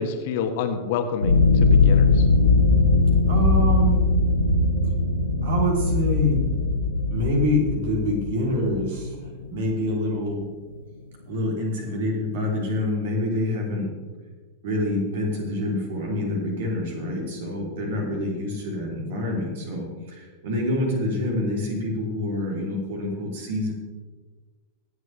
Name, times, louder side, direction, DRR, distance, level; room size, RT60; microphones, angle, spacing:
voice 1, 0.0-2.3, left 6 dB, 50° left, 6 dB, 1.4 m, -28 dB
sound 1, 1.2-9.4, left 3 dB, 80° left, 1.4 m, -20 dB
voice 2, 3.3-4.0 5.4-6.4 7.1-10.5 11.3-13.9 14.6-23.7, left 1 dB, 55° right, 0 dB, 3.4 m, -26 dB
24.0 x 8.0 x 3.4 m, 1.4 s
figure-of-eight pair, 90°, 0 cm